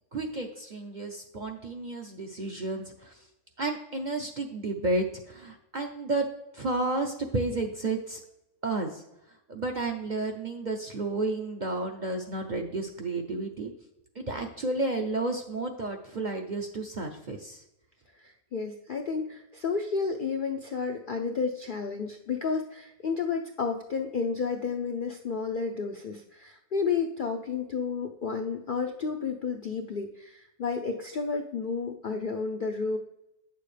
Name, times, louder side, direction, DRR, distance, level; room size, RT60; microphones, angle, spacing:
voice 1, 0.1-3.3 3.6-6.3 6.5-8.2 8.6-9.0 9.5-13.7 14.1-17.6, right 2 dB, 45° right, 3 dB, 0.6 m, -32 dB
voice 2, 18.2-33.0, left 5 dB, 60° left, 3 dB, 0.5 m, -31 dB
9.0 x 6.9 x 3.3 m, 0.88 s
omnidirectional pair, 1.5 m